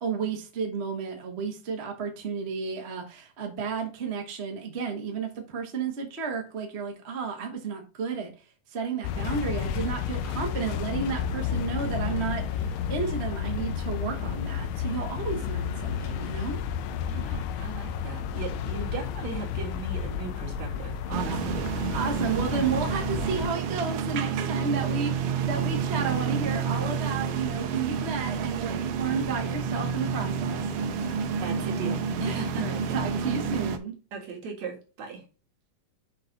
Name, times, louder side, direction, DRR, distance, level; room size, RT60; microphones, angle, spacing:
voice 1, 0.0-8.3 8.7-16.6 21.3-21.4 21.9-30.7 32.2-33.9, right 5 dB, 40° right, 0.9 m, -32 dB
sound 1, 9.0-23.5, left 7 dB, 80° left, 2.3 m, -31 dB
voice 2, 17.1-21.6 31.0-31.1 31.4-33.0 34.1-35.2, right 5 dB, 60° right, 3.1 m, -38 dB
sound 2, 21.1-33.8, right 6 dB, 85° right, 1.3 m, -29 dB
6.5 x 5.4 x 4.0 m
omnidirectional pair, 3.8 m